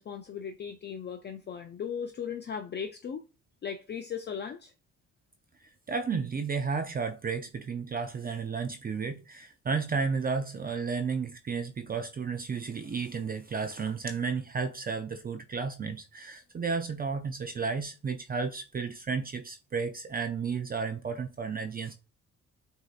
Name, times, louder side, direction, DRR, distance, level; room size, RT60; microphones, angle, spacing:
voice 1, 0.0-3.2 3.6-4.7, left 7 dB, 35° left, 0.4 m, -37 dB
voice 2, 5.9-21.9, right 5 dB, 30° right, 0.5 m, -32 dB
6.3 x 2.7 x 2.4 m
cardioid pair, 90°, 30 cm